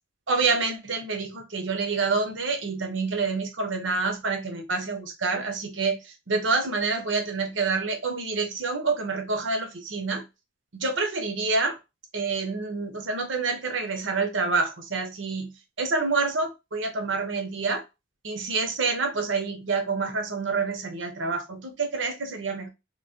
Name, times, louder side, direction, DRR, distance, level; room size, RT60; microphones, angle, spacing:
voice 1, 0.3-6.0 6.3-10.2 10.7-11.8 12.1-15.5 15.8-17.8 18.2-22.7, right 4 dB, 75° right, 0.9 m, -27 dB
3.1 x 2.8 x 2.7 m
head